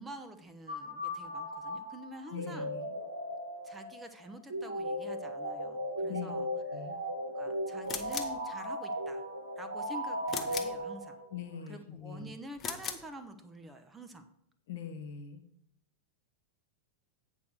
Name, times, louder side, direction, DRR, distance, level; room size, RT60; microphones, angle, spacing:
voice 1, 0.0-2.7 3.6-6.5 6.8-7.0 7.3-9.2 9.6-11.2 11.7-14.3, right 1 dB, 10° right, 7 dB, 0.8 m, -48 dB
sound 1, 0.7-11.4, equal, 80° right, 1.8 m, -37 dB
voice 2, 2.3-2.9 6.1-6.3 6.7-7.0 11.3-12.3 14.7-15.4, left 8 dB, 55° left, 6 dB, 1.3 m, -42 dB
sound 2, 7.9-8.4 10.3-10.8 12.6-13.1, left 7 dB, 25° left, 1.0 m, -38 dB
8.4 x 4.6 x 6.6 m, 0.73 s
figure-of-eight pair, 90°, 0 cm